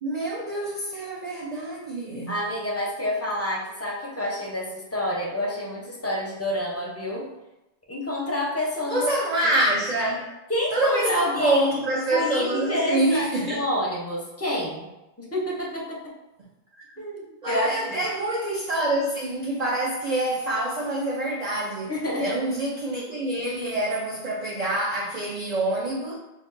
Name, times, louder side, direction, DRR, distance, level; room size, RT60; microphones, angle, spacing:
voice 1, 0.0-2.4 8.9-10.3 10.7-13.6 17.4-21.9 22.2-26.1, right 1 dB, 55° right, -3 dB, 0.5 m, -26 dB
voice 2, 2.3-7.3 7.9-9.1 10.5-11.8 12.1-14.9 15.2-16.1 17.0-18.0 21.9-22.4, left 1 dB, 20° left, -4 dB, 0.5 m, -28 dB
4.0 x 2.2 x 2.4 m, 0.95 s
omnidirectional pair, 1.0 m